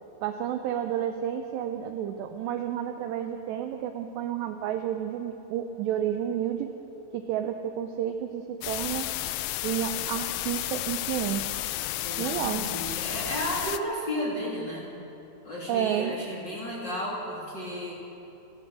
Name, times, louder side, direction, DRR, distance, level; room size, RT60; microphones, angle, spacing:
voice 1, 0.2-6.7 7.1-9.1 9.6-11.7 12.2-12.7 15.7-16.2, right 10 dB, 80° right, 6 dB, 2.5 m, -31 dB
sound 1, 8.6-13.8, left 16 dB, 85° left, 3.3 m, -32 dB
voice 2, 12.0-14.9 15.4-17.9, equal, 25° left, -4 dB, 2.8 m, -33 dB
28.5 x 13.5 x 7.7 m, 2.9 s
omnidirectional pair, 5.7 m